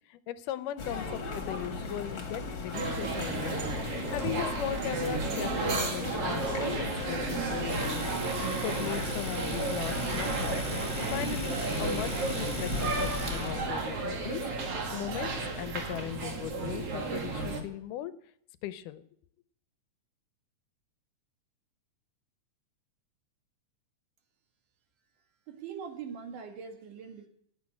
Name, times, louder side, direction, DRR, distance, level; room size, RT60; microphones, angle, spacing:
voice 1, 0.1-3.6 4.1-8.1 8.6-10.6 11.1-14.4 14.9-18.1 18.6-19.0, left 12 dB, 85° left, 13 dB, 2.3 m, -38 dB
sound 1, 0.8-13.7, left 4 dB, 40° left, 2.3 m, -37 dB
sound 2, 2.7-17.6, right 3 dB, 50° right, 2.7 m, -33 dB
Domestic sounds home sounds, 7.7-13.6, right 3 dB, 25° right, 1.4 m, -39 dB
voice 2, 25.5-27.3, right 6 dB, 75° right, 4 dB, 3.2 m, -42 dB
16.5 x 6.7 x 9.7 m, 0.70 s
omnidirectional pair, 3.6 m